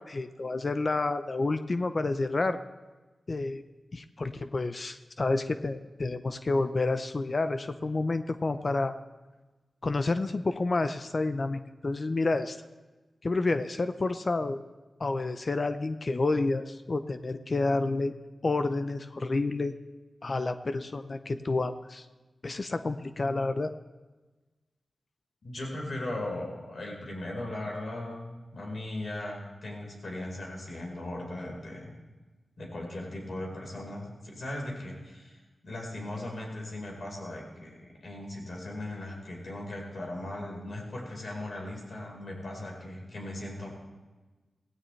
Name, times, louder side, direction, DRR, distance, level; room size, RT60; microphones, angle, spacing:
voice 1, 0.0-2.6 3.3-3.6 3.9-8.9 9.8-12.6 13.2-14.6 15.0-18.1 18.4-19.7 20.2-22.1 22.4-23.7, left 3 dB, 50° left, 10 dB, 0.6 m, -29 dB
voice 2, 25.4-31.9 32.6-43.7, left 1 dB, 70° left, -1 dB, 4.5 m, -38 dB
16.5 x 16.5 x 3.3 m, 1.2 s
cardioid pair, 45°, 0 cm